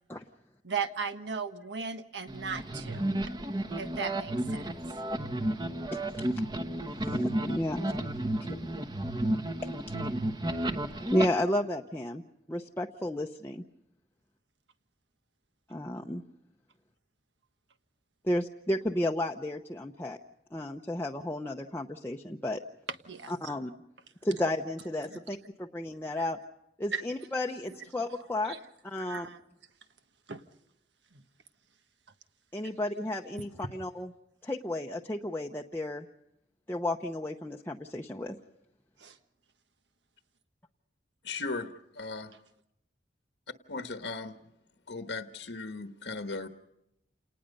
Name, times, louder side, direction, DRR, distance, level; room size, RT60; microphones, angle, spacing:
voice 1, 0.6-3.2 3.8-4.7 23.1-23.3 25.1-25.2 26.2-26.3 26.9-27.0 28.4-28.6 29.0-29.4 30.3-30.4 31.1-31.2 32.6-32.7 39.0-39.2, right 5 dB, 80° right, 9 dB, 1.4 m, -37 dB
sound 1, 2.3-11.3, right 1 dB, 25° right, 1.1 m, -32 dB
voice 2, 5.9-6.3 7.0-8.0 8.4-8.6 9.6-9.7 11.1-12.2 12.5-13.6 15.7-16.2 18.2-20.2 20.5-22.6 23.3-23.7 24.2-26.4 26.8-28.6 28.8-29.3 32.5-34.1 34.4-36.1 36.7-38.4, left 1 dB, 10° left, 0 dB, 0.8 m, -32 dB
voice 3, 41.2-41.7 41.9-42.3 43.7-44.4 44.9-46.5, left 3 dB, 75° left, 7 dB, 1.2 m, -37 dB
28.5 x 19.0 x 5.4 m, 0.83 s
head